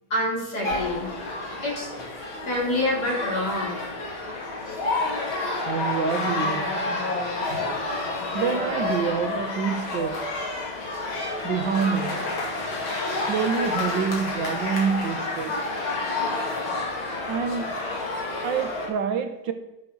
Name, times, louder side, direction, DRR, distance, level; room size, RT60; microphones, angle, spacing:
voice 1, 0.1-1.1 1.6-1.9 2.5-3.9 4.6-4.8 7.5-7.6 10.9-11.1 12.8-13.4 16.6-16.8 18.2-18.3, left 1 dB, 50° left, 4.9 m, -28 dB
sound 1, 0.6-18.9, left 2 dB, 70° left, 3.2 m, -29 dB
voice 2, 5.7-6.7 8.3-10.2 11.4-12.3 13.1-15.6 17.3-17.7 18.4-19.5, right 6 dB, 65° right, 1.7 m, -27 dB
12.5 x 6.8 x 6.4 m
omnidirectional pair, 2.3 m